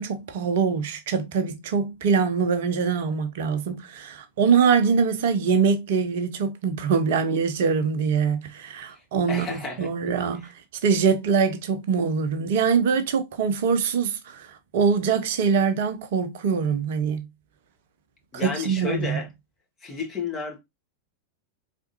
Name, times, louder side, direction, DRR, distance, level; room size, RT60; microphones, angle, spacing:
voice 1, 0.0-10.5 10.8-17.3 18.4-19.2, right 6 dB, 55° right, 0.7 m, -23 dB
voice 2, 9.3-9.9 18.3-19.3 19.8-20.6, left 4 dB, 25° left, 1.7 m, -31 dB
4.3 x 3.5 x 2.6 m
figure-of-eight pair, 90°, 0 cm